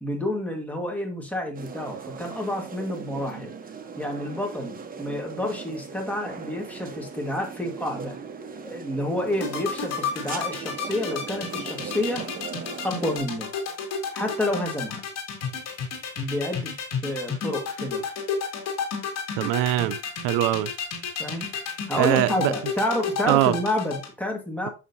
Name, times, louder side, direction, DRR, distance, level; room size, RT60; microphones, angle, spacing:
voice 1, 0.0-3.5 4.0-8.2 8.6-12.2 12.8-13.5 14.1-15.0 16.2-16.7 17.0-18.0 21.2-21.5 21.9-24.7, left 1 dB, 5° left, 1.6 m, -29 dB
sound 1, 1.5-13.2, right 5 dB, 25° right, 0.9 m, -38 dB
sound 2, 9.3-24.1, left 7 dB, 50° left, 2.4 m, -31 dB
voice 2, 19.4-20.0 20.2-20.7 22.0-22.5 23.3-23.6, right 14 dB, 75° right, 0.5 m, -22 dB
6.2 x 6.1 x 2.7 m
cardioid pair, 120°, 33 cm